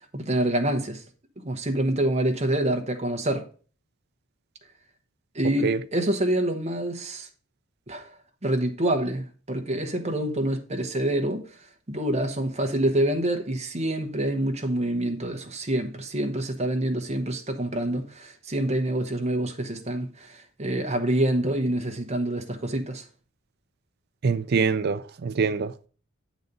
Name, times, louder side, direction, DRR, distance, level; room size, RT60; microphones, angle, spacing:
voice 1, 0.1-1.0 1.4-3.5 5.3-7.3 7.9-8.1 8.4-11.4 11.9-23.0, right 1 dB, 30° right, 0.9 m, -26 dB
voice 2, 24.2-25.9, right 5 dB, 45° right, 0.4 m, -24 dB
7.9 x 4.1 x 5.3 m
head